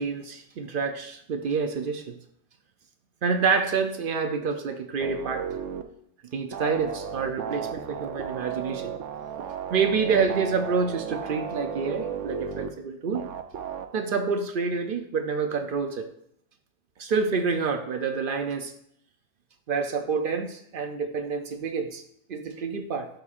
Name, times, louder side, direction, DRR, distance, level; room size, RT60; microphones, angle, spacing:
voice 1, 0.0-2.1 3.2-5.6 6.3-8.9 9.7-13.2 13.9-16.1 17.0-18.7 19.7-22.0 22.3-23.1, right 5 dB, 60° right, 7 dB, 0.6 m, -27 dB
Cool Bass, 5.0-5.8 6.5-12.7 13.1-13.9, right 7 dB, 85° right, 0.9 m, -34 dB
11.5 x 4.2 x 2.4 m, 0.71 s
omnidirectional pair, 1.2 m